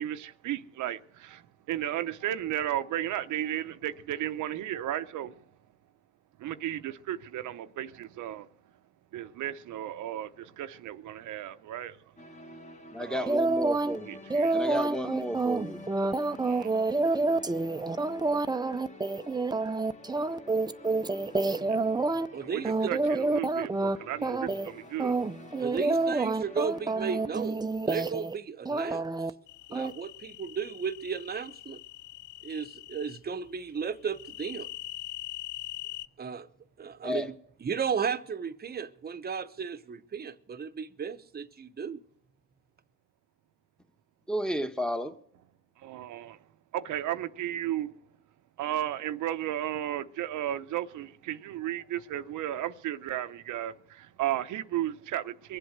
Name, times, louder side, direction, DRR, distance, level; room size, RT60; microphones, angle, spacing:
voice 1, 0.0-5.4 6.4-8.5 9.1-12.0 13.0-13.4 14.1-14.6 16.4-16.7 21.7-21.8 22.4-22.6 22.9-25.2 45.8-46.4 46.7-47.9 48.6-55.6, right 12 dB, 80° right, 0.8 m, -34 dB
sound 1, 12.2-27.5, left 2 dB, 25° left, 1.6 m, -49 dB
voice 2, 12.9-14.2 14.5-15.8 37.0-37.3 44.3-45.1, equal, ahead, 1.2 m, -32 dB
sound 2, 13.3-14.0 14.3-22.3 22.6-24.0 24.2-24.7 25.0-28.4 28.7-29.3 29.7-29.9, right 3 dB, 15° right, 0.6 m, -28 dB
voice 3, 22.3-22.9 25.6-29.1 29.7-31.8 32.4-34.7 36.2-36.5 36.8-42.0, right 6 dB, 30° right, 0.9 m, -34 dB
sound 3, 29.5-33.2 34.1-36.1, left 16 dB, 75° left, 0.5 m, -43 dB
22.5 x 7.9 x 6.7 m
cardioid pair, 90°, 30 cm